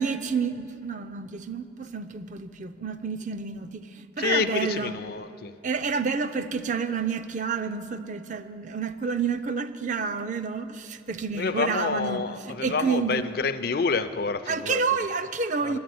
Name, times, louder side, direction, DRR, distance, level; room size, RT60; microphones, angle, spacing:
voice 1, 0.0-4.9 5.6-13.2 14.5-15.8, right 5 dB, 40° right, 10 dB, 0.5 m, -29 dB
voice 2, 4.2-5.5 11.3-14.8 15.6-15.8, left 4 dB, 55° left, 12 dB, 0.5 m, -28 dB
10.0 x 9.7 x 9.4 m, 2.5 s
head